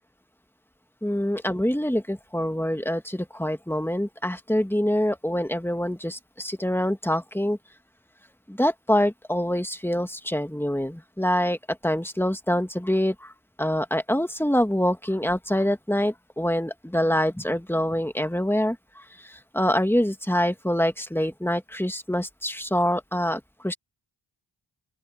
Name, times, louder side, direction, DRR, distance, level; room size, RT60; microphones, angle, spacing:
voice 1, 1.0-7.6 8.5-13.3 13.6-23.7, equal, 5° left, 1.7 m, -25 dB
open air
wide cardioid pair, 55°, 49 cm